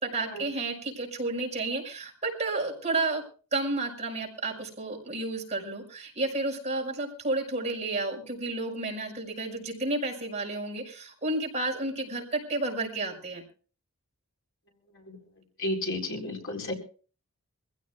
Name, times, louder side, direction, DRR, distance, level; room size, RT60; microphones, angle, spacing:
voice 1, 0.0-3.2 3.5-13.4, right 2 dB, 30° right, 0 dB, 5.5 m, -31 dB
voice 2, 15.6-16.7, left 1 dB, 60° left, 0 dB, 4.2 m, -32 dB
25.5 x 16.0 x 2.4 m, 0.39 s
head